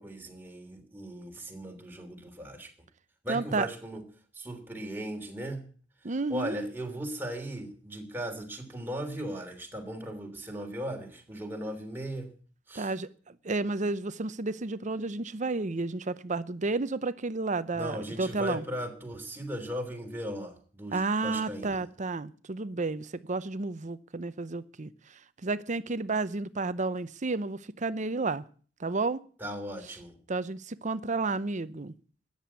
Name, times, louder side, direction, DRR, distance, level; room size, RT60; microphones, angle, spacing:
voice 1, 0.0-2.7 3.2-4.0 4.3-5.7 6.3-12.3 12.7-12.9 17.7-21.8 29.4-30.2, equal, 10° right, 2 dB, 3.2 m, -37 dB
voice 2, 3.3-3.7 6.0-6.6 12.7-18.6 20.9-24.9 25.4-28.4 28.8-29.2 30.3-31.9, right 3 dB, 40° right, 15 dB, 0.7 m, -31 dB
13.5 x 9.9 x 8.3 m, 0.43 s
head